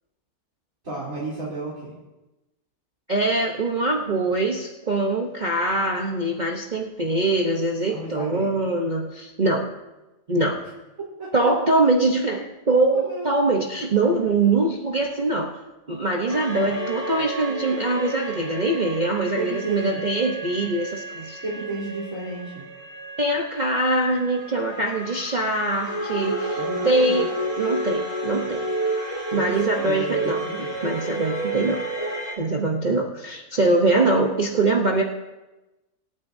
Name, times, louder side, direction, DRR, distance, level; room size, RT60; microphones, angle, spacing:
voice 1, 0.8-1.9 7.9-8.6 11.2-11.3 12.9-13.3 16.6-16.8 19.3-20.0 21.4-22.6 26.6-27.2 29.3-30.7, right 2 dB, 55° right, -8 dB, 3.9 m, -33 dB
voice 2, 3.1-9.7 10.3-10.6 11.3-15.6 15.9-21.4 23.2-26.6 26.8-27.3 27.6-28.6 29.3-30.4 30.8-31.8 32.4-35.0, right 2 dB, 35° right, -1 dB, 0.8 m, -23 dB
sound 1, 16.3-32.3, right 2 dB, 20° left, 3.3 m, -31 dB
25.5 x 9.3 x 2.7 m, 1.1 s
omnidirectional pair, 1.7 m